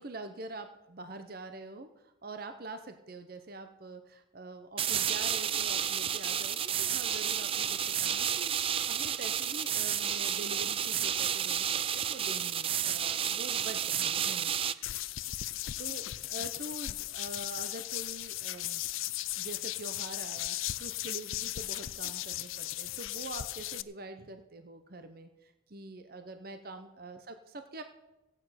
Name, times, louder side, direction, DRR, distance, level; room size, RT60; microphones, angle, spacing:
voice 1, 0.0-15.1 15.8-18.8 19.3-27.8, right 2 dB, 45° right, 8 dB, 0.8 m, -45 dB
sound 1, 4.8-14.7, right 9 dB, 30° right, 0.4 m, -31 dB
sound 2, 14.8-23.8, left 15 dB, 80° left, 0.5 m, -37 dB
16.0 x 9.1 x 5.7 m, 0.97 s
head